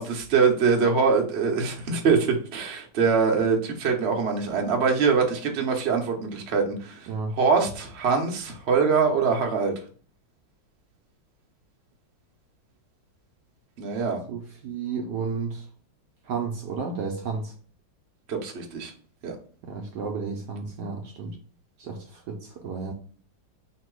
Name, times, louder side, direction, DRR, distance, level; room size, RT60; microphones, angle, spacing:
voice 1, 0.0-9.7 13.8-14.2 18.3-18.9 19.2-19.4, right 5 dB, 55° right, 0.7 m, -23 dB
voice 2, 14.3-15.6 16.3-17.5 19.6-21.3 21.8-22.9, right 5 dB, 70° right, 1.1 m, -32 dB
3.0 x 2.8 x 4.5 m
omnidirectional pair, 2.2 m